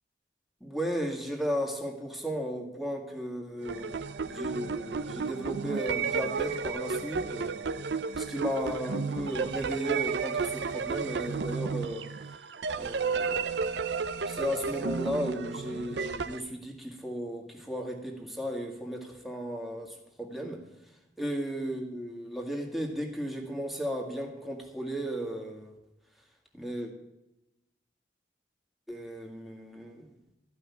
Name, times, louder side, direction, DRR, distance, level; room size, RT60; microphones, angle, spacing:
voice 1, 0.6-7.7 8.2-12.1 12.8-13.6 14.3-20.6 21.2-25.8 26.5-26.9 28.9-30.1, equal, ahead, 1 dB, 1.9 m, -35 dB
sound 1, 3.6-16.4, right 5 dB, 80° right, 0.6 m, -32 dB
14.5 x 5.6 x 8.4 m, 0.96 s
head